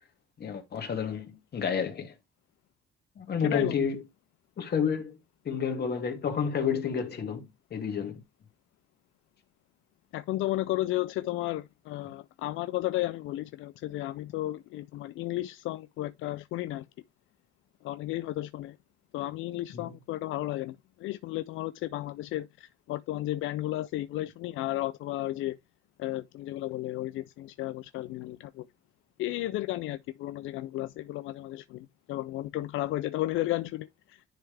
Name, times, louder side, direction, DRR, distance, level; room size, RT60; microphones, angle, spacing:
voice 1, 0.4-2.1 3.2-4.0 4.6-5.2 5.4-8.2 19.7-19.9, left 6 dB, 55° left, 2.3 m, -30 dB
voice 2, 3.4-3.7 10.1-16.8 17.8-18.8 19.1-25.6 26.0-28.7 29.2-34.2, left 16 dB, 85° left, 0.4 m, -33 dB
10.5 x 3.4 x 3.4 m
cardioid pair, 90°, 20 cm